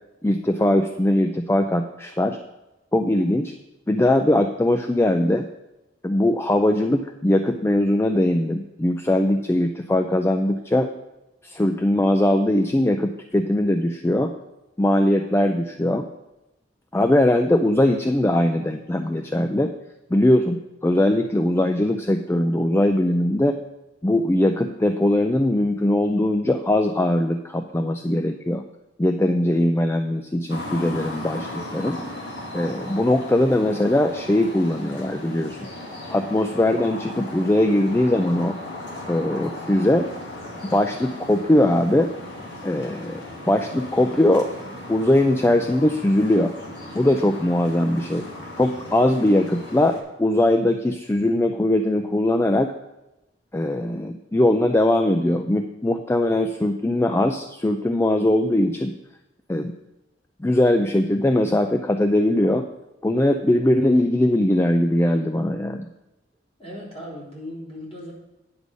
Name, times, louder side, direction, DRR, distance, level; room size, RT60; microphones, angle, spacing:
voice 1, 0.2-2.4 2.9-3.5 3.9-5.5 6.0-10.9 11.4-14.3 14.8-16.1 16.9-19.7 20.1-23.6 24.0-28.6 29.0-32.0 32.5-35.6 36.1-38.6 39.1-40.1 40.7-42.1 42.6-44.5 44.9-46.5 46.9-48.3 48.6-52.7 53.5-58.9 59.5-59.7 60.4-62.6 63.0-65.9, left 1 dB, 15° left, 6 dB, 0.4 m, -20 dB
sound 1, 30.5-50.0, left 1 dB, 85° left, 2.1 m, -37 dB
voice 2, 66.6-68.1, equal, 35° left, -6 dB, 3.7 m, -37 dB
9.7 x 5.3 x 6.2 m, 0.95 s
head